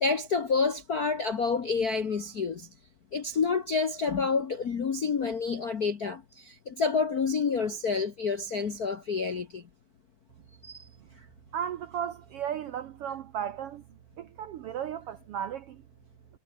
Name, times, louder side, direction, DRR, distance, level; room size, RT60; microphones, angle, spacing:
voice 1, 0.0-2.7 3.1-9.6 10.6-10.9, left 5 dB, 55° left, 1.0 m, -28 dB
voice 2, 11.5-13.8 14.2-15.8, right 9 dB, 70° right, 1.4 m, -35 dB
omnidirectional pair, 3.6 m